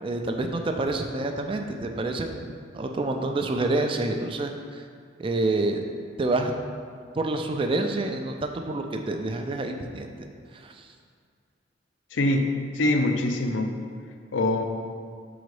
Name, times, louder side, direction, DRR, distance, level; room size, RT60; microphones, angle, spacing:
voice 1, 0.0-4.8 5.2-5.8 6.2-6.5 7.2-10.3 10.5-10.9, right 2 dB, 30° right, 4 dB, 0.4 m, -28 dB
voice 2, 12.1-13.8 14.3-14.6, left 2 dB, 90° left, 5 dB, 0.5 m, -24 dB
5.2 x 3.9 x 4.8 m, 2.1 s
head